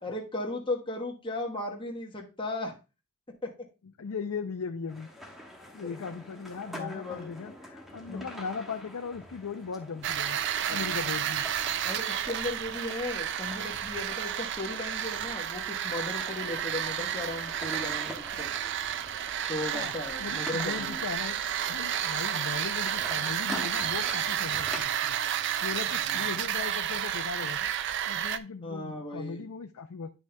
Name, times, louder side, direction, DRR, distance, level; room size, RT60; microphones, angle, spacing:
voice 1, 0.0-2.7 3.3-3.5 5.8-6.0 6.7-7.3 8.1-8.3 10.7-11.0 11.8-18.5 19.5-21.0 25.9-26.3 28.6-29.4, left 2 dB, 20° left, 1 dB, 1.1 m, -36 dB
voice 2, 4.0-5.1 5.7-10.4 10.7-11.5 19.7-19.9 20.2-21.4 21.7-25.2 25.6-27.7 28.1-30.1, left 5 dB, 80° left, 5 dB, 0.5 m, -38 dB
sound 1, 4.9-24.8, equal, ahead, 1.2 m, -46 dB
sound 2, 10.0-28.4, right 10 dB, 50° right, 0.4 m, -31 dB
10.0 x 6.2 x 2.2 m, 0.30 s
head